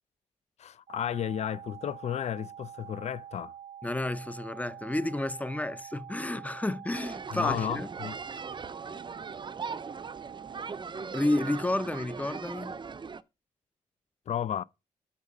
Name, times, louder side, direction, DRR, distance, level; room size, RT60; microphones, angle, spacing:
voice 1, 0.6-3.5 7.3-8.2 14.3-14.6, left 9 dB, 55° left, 0.4 m, -33 dB
sound 1, 0.9-10.9, right 10 dB, 85° right, 0.5 m, -46 dB
voice 2, 3.8-7.9 11.1-12.7, left 1 dB, 10° left, 0.6 m, -31 dB
sound 2, 6.9-13.2, right 5 dB, 35° right, 0.6 m, -39 dB
8.8 x 5.1 x 5.4 m
cardioid pair, 85°, 14 cm